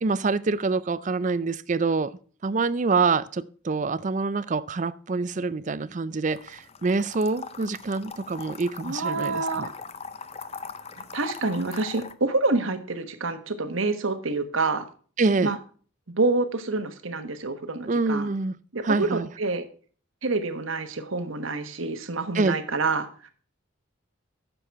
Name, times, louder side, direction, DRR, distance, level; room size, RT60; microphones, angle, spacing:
voice 1, 0.0-2.2 2.4-9.7 15.2-15.5 17.9-18.6 18.8-19.3 22.3-22.6, right 4 dB, 35° right, 0.4 m, -26 dB
sound 1, 6.3-12.1, left 5 dB, 30° left, 0.5 m, -40 dB
voice 2, 8.8-9.7 11.1-14.9 15.4-15.6 16.1-18.3 18.7-19.6 20.2-23.3, right 3 dB, 80° right, 1.3 m, -27 dB
10.0 x 6.9 x 4.6 m
head